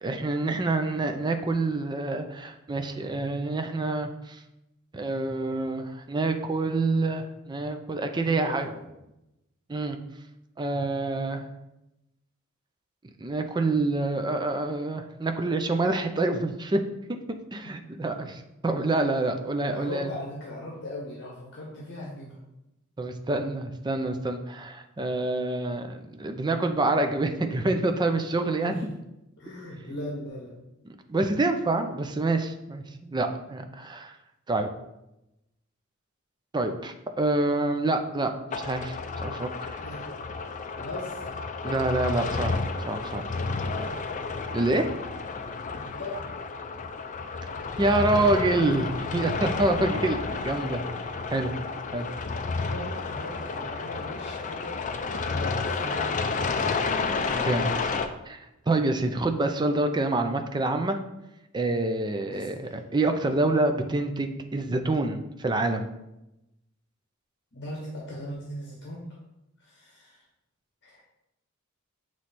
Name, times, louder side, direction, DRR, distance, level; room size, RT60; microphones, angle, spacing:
voice 1, 0.0-4.4 4.9-8.7 9.7-10.0 10.6-11.4 13.2-16.8 17.1-17.2 17.5-20.1 23.0-28.7 31.1-34.1 34.5-34.7 36.5-39.7 41.6-42.5 42.9-43.2 44.5-44.9 47.8-50.2 50.4-50.8 51.3-51.5 51.9-52.1 57.3-57.9 58.3-58.4 58.7-61.0 61.5-62.5 62.9-65.9, right 2 dB, 20° right, 6 dB, 0.5 m, -27 dB
voice 2, 8.1-8.9 17.6-17.7 19.7-22.4 28.6-28.8 29.4-30.5 39.8-40.0 40.7-41.2 43.7-43.9 45.7-46.2 52.5-56.9 62.3-62.8 67.5-69.2 69.6-70.2 70.8-71.0, left 1 dB, 55° left, -3 dB, 1.3 m, -39 dB
sound 1, 38.5-58.1, left 4 dB, 35° left, 0.4 m, -31 dB
7.6 x 3.1 x 4.2 m, 0.91 s
head